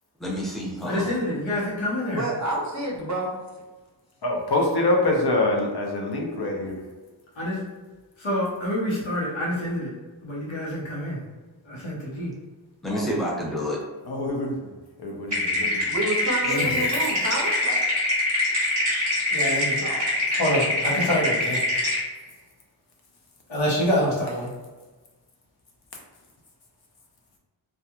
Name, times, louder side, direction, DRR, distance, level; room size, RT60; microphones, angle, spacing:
voice 1, 0.2-1.1 12.8-13.8 16.6-16.8, equal, ahead, -4 dB, 0.6 m, -29 dB
voice 2, 0.9-2.2 7.4-7.6 8.2-9.9 10.2-11.2 11.7-12.3 16.4-16.8 19.3-19.8 20.4-21.6 23.5-24.5, equal, 90° left, -5 dB, 0.9 m, -26 dB
voice 3, 2.1-3.4 15.9-17.8 19.8-20.2, right 1 dB, 40° right, -1 dB, 0.6 m, -29 dB
voice 4, 4.2-6.8 12.9-13.1 14.0-14.7 15.0-15.9, left 2 dB, 60° left, 0 dB, 0.7 m, -25 dB
sound 1, 15.3-22.0, left 1 dB, 15° right, 1.4 m, -24 dB
2.8 x 2.3 x 2.3 m, 1.3 s
wide cardioid pair, 70°, 45 cm